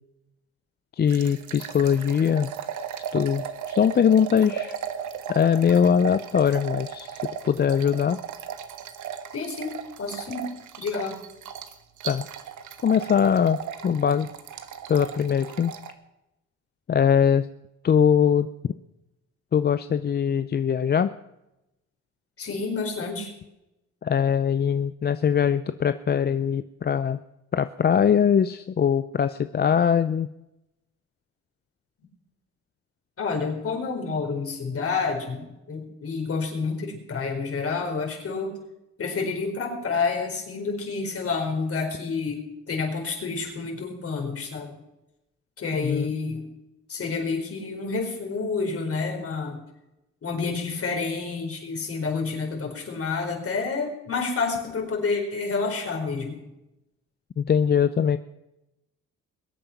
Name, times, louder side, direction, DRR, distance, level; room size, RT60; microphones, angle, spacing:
voice 1, 1.0-2.5 3.1-4.8 5.3-8.2 12.0-12.3 12.8-14.3 14.9-15.7 16.9-17.5 17.8-18.5 19.5-21.1 24.0-27.2 27.5-30.3 45.8-46.1 57.4-58.2, left 7 dB, 35° left, 12 dB, 0.5 m, -22 dB
sound 1, 1.1-15.9, right 8 dB, 75° right, 1.3 m, -36 dB
voice 2, 9.3-9.7 10.0-10.5 10.8-11.2 22.4-23.3 33.2-38.5 39.0-42.4 42.7-44.7 45.6-46.5 46.9-49.6 50.2-56.4, left 4 dB, 50° left, 1 dB, 4.6 m, -29 dB
21.0 x 8.8 x 5.9 m, 0.92 s
cardioid pair, 90°, 30 cm